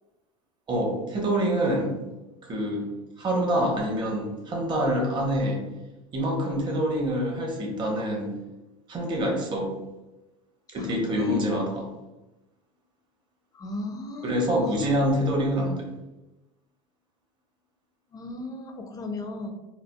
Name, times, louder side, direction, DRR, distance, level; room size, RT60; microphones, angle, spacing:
voice 1, 0.7-2.0 2.4-2.9 3.2-5.6 6.1-8.3 8.9-9.7 10.7-11.9 14.2-15.9, equal, 30° right, -1 dB, 1.0 m, -26 dB
voice 2, 11.2-11.6 13.5-14.9 18.1-19.5, left 2 dB, 25° left, 5 dB, 0.5 m, -36 dB
4.3 x 2.4 x 2.2 m, 1.1 s
supercardioid pair, 115°, 16 cm